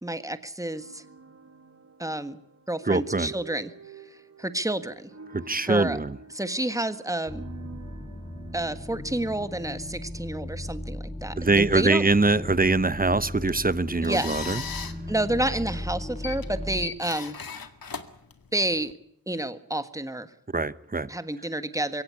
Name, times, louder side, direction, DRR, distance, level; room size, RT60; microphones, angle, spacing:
voice 1, 0.0-1.0 2.0-2.4 2.7-3.7 4.0-5.1 5.6-6.0 6.3-7.4 8.5-12.1 14.0-14.6 15.1-17.4 18.5-18.9 19.3-20.3 21.1-22.0, right 1 dB, 10° right, 1.6 m, -30 dB
sound 1, 0.7-10.8, right 6 dB, 50° right, 2.2 m, -48 dB
voice 2, 2.9-3.3 5.3-6.1 11.4-14.6 20.5-21.1, right 3 dB, 25° right, 0.9 m, -23 dB
sound 2, 7.3-16.9, left 1 dB, 20° left, 3.4 m, -37 dB
sound 3, 13.3-18.9, left 6 dB, 75° left, 2.0 m, -39 dB
23.0 x 17.5 x 9.8 m
wide cardioid pair, 75°, 35 cm